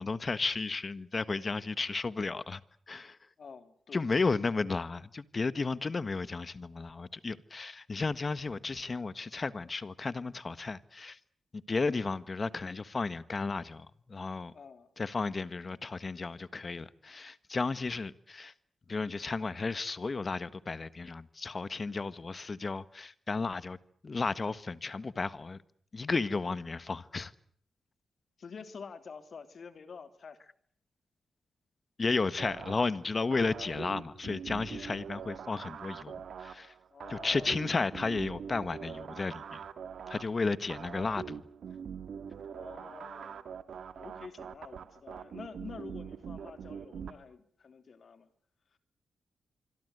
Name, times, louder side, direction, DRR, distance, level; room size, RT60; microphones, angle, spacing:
voice 1, 0.0-2.6 2.9-3.2 3.9-11.2 11.5-14.5 15.0-18.5 18.9-23.8 24.0-25.6 25.9-27.3 32.0-36.7 37.1-39.6 40.1-41.4, left 4 dB, 35° left, 1.5 m, -33 dB
voice 2, 3.4-4.1 14.5-14.9 28.4-30.4 36.9-37.7 42.4-43.4 43.9-48.3 48.7-48.8, left 5 dB, 55° left, 3.3 m, -48 dB
sound 1, 32.4-47.1, right 7 dB, 75° right, 2.3 m, -43 dB
26.5 x 23.5 x 8.1 m
cardioid pair, 95°, 0 cm